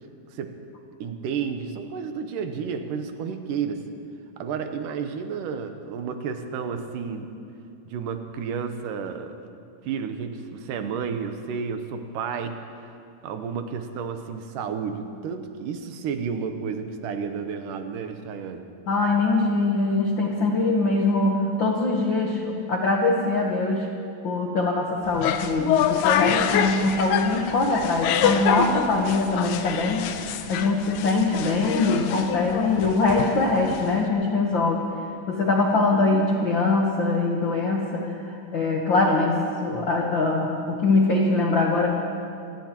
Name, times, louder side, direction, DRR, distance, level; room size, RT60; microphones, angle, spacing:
voice 1, 1.0-3.9 4.4-7.4 7.9-9.4 9.8-12.6 12.8-12.9 13.2-18.7, right 6 dB, 80° right, 7 dB, 2.4 m, -31 dB
voice 2, 18.9-23.9 24.2-30.1 30.5-34.8 35.3-41.9, left 3 dB, 65° left, -1 dB, 1.1 m, -23 dB
sound 1, 25.0-34.1, left 8 dB, 90° left, 2.4 m, -26 dB
26.0 x 18.0 x 3.0 m, 2.5 s
omnidirectional pair, 3.8 m